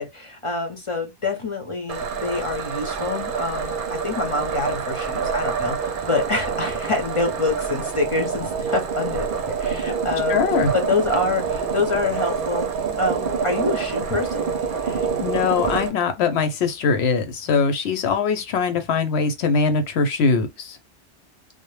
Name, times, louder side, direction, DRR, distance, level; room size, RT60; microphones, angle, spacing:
voice 1, 0.0-10.4 10.7-12.7 13.0-14.5, left 3 dB, 35° left, 0.6 m, -26 dB
sound 1, 1.9-15.9, right 6 dB, 55° right, 0.7 m, -27 dB
voice 2, 10.3-10.7 14.8-20.8, left 5 dB, 70° left, 0.8 m, -22 dB
2.1 x 2.0 x 3.0 m
omnidirectional pair, 1.2 m